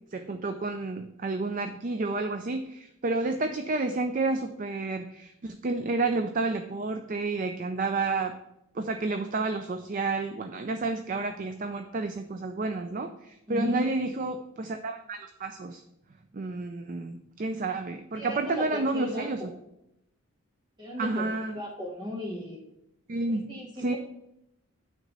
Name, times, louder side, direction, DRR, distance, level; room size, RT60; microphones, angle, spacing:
voice 1, 0.1-8.3 8.7-15.8 16.3-19.5 21.0-21.6 23.1-23.5 23.8-23.9, right 3 dB, 40° right, 7 dB, 0.4 m, -30 dB
voice 2, 13.5-13.9 18.1-19.3 20.8-22.6 23.3-24.0, left 1 dB, 20° right, -2 dB, 2.1 m, -35 dB
9.3 x 3.8 x 5.3 m, 0.83 s
head